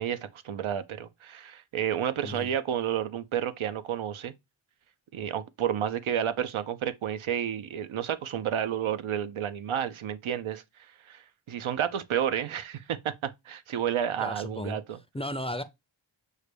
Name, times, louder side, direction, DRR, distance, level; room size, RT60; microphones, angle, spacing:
voice 1, 0.0-4.3 5.1-10.6 11.0-15.0, right 9 dB, 90° right, 0.6 m, -31 dB
voice 2, 14.2-14.8 15.1-15.6, left 1 dB, 15° left, 0.4 m, -34 dB
6.4 x 2.2 x 3.2 m
cardioid pair, 45°, 47 cm